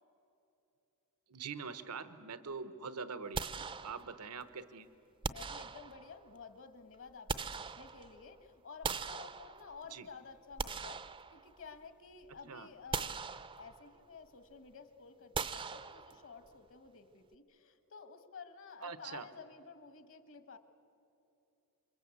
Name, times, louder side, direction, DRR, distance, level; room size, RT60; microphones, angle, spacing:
voice 1, 1.3-4.9 9.9-10.1 12.5-12.7 18.8-19.3, right 5 dB, 90° right, 12 dB, 1.1 m, -44 dB
sound 1, 3.3-4.4 5.2-6.3 6.9-8.3 8.8-9.9 10.4-11.9 12.2-12.4 12.9-14.0 15.3-16.5, right 5 dB, 25° right, 0.5 m, -41 dB
voice 2, 5.2-13.2 13.6-20.6, left 5 dB, 60° left, 9 dB, 1.6 m, -52 dB
28.0 x 24.0 x 8.5 m, 2.9 s
head